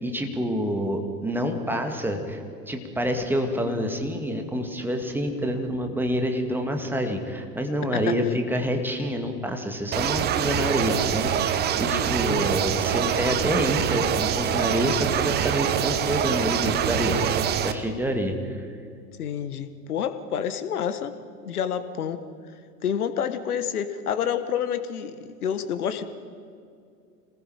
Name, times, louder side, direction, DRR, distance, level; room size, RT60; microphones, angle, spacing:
voice 1, 0.0-18.6, equal, 5° right, 4 dB, 2.0 m, -27 dB
sound 1, 9.9-17.7, right 9 dB, 20° right, 0.9 m, -25 dB
voice 2, 19.2-21.1 21.4-22.2 22.8-26.0, left 8 dB, 65° left, 11 dB, 1.5 m, -28 dB
27.0 x 19.5 x 5.0 m, 2.4 s
figure-of-eight pair, 95°, 48 cm